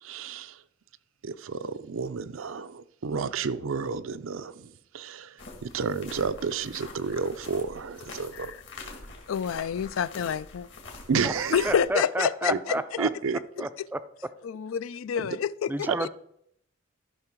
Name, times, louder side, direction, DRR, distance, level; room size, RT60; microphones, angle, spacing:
voice 1, 0.0-0.6 1.2-8.5 11.1-11.7 12.5-12.6 13.0-13.7 15.2-15.4 15.9-16.0, right 5 dB, 90° right, 0.5 m, -31 dB
sound 1, 5.4-11.9, left 3 dB, 60° left, 2.0 m, -45 dB
voice 2, 9.3-10.7 11.5-12.8 14.4-16.1, left 7 dB, 90° left, 0.4 m, -28 dB
voice 3, 11.2-13.1 13.6-14.0 15.7-16.1, right 1 dB, 10° right, 0.4 m, -31 dB
13.0 x 5.8 x 4.6 m
head